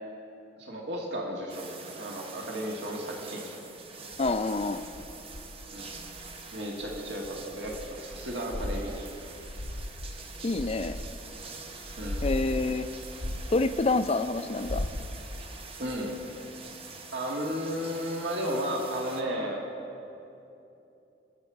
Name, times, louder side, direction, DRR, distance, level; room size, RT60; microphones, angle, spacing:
voice 1, 0.6-3.6 5.7-5.9 6.5-9.0 12.0-12.2 15.8-16.1 17.1-19.7, equal, 75° right, -1 dB, 1.9 m, -34 dB
sound 1, 1.5-19.2, right 4 dB, 30° right, 0.9 m, -45 dB
sound 2, 4.1-6.4 6.8-11.4 11.8-14.1 14.5-15.4, left 1 dB, 85° left, 0.9 m, -37 dB
voice 2, 4.2-4.8 10.4-11.0 12.2-12.9 13.5-14.9, left 3 dB, 35° left, 11 dB, 0.4 m, -27 dB
21.5 x 7.6 x 4.7 m, 2.8 s
head